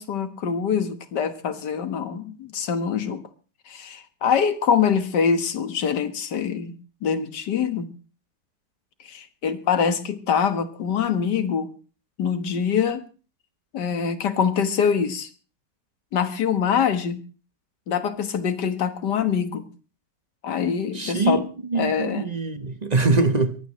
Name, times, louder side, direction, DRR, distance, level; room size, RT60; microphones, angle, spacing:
voice 1, 0.0-3.2 3.7-6.8 7.0-7.9 9.0-11.7 12.2-13.0 13.7-15.3 16.1-17.2 17.9-19.6 20.4-21.5 21.7-22.3, left 7 dB, 80° left, 2.0 m, -24 dB
voice 2, 20.9-21.4 21.7-23.6, right 3 dB, 30° right, 0.9 m, -23 dB
22.5 x 16.0 x 3.1 m
omnidirectional pair, 1.8 m